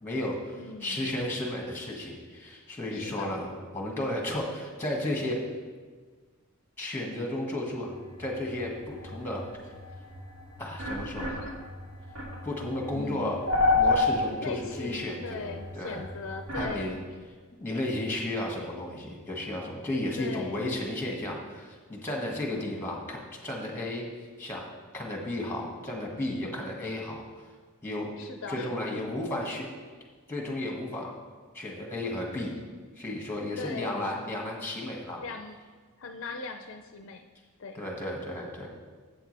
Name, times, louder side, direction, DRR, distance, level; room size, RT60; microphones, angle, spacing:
voice 1, 0.0-5.4 6.8-7.9 8.2-9.4 10.6-11.3 12.4-13.4 13.7-16.0 16.6-17.0 17.6-24.1 24.4-24.7 24.9-27.2 27.8-28.1 28.5-29.7 30.3-31.1 31.5-32.6 33.0-35.2 37.7-38.7, left 1 dB, 10° left, -1 dB, 1.7 m, -33 dB
voice 2, 0.5-1.1 2.9-3.4 12.4-12.5 12.9-13.3 14.4-17.0 20.2-20.8 22.4-22.8 28.2-29.0 33.6-34.2 35.2-35.6 36.0-37.3 37.6-37.8, left 4 dB, 60° left, 6 dB, 0.5 m, -40 dB
sound 1, 7.8-16.8, left 3 dB, 65° right, 2.5 m, -31 dB
13.0 x 8.1 x 3.3 m, 1.5 s
head